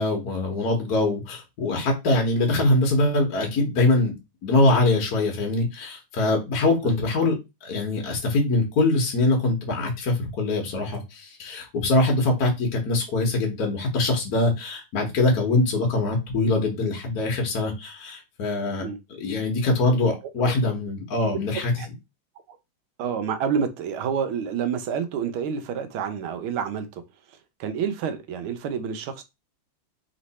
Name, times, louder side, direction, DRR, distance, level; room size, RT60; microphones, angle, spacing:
voice 1, 0.0-4.2 4.4-21.7, left 2 dB, 55° left, 1.3 m, -23 dB
voice 2, 23.0-27.0 27.6-29.2, right 7 dB, 75° right, 1.5 m, -28 dB
3.6 x 3.2 x 4.1 m
omnidirectional pair, 2.4 m